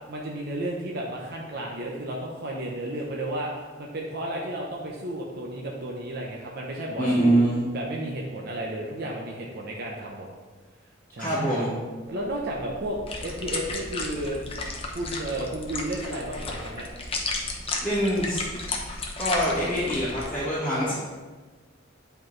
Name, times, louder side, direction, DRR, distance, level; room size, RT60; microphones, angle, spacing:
voice 1, 0.1-3.5 3.8-7.4 7.7-10.3 11.1-11.6 12.1-14.4 14.9-16.9, right 1 dB, 55° right, -2 dB, 0.8 m, -33 dB
voice 2, 7.0-7.7 11.2-11.7 17.8-18.5 19.2-20.9, right 1 dB, 10° left, -11 dB, 1.6 m, -24 dB
sound 1, 12.1-20.3, left 3 dB, 30° left, 0.8 m, -34 dB
9.8 x 4.5 x 3.2 m, 1.4 s
head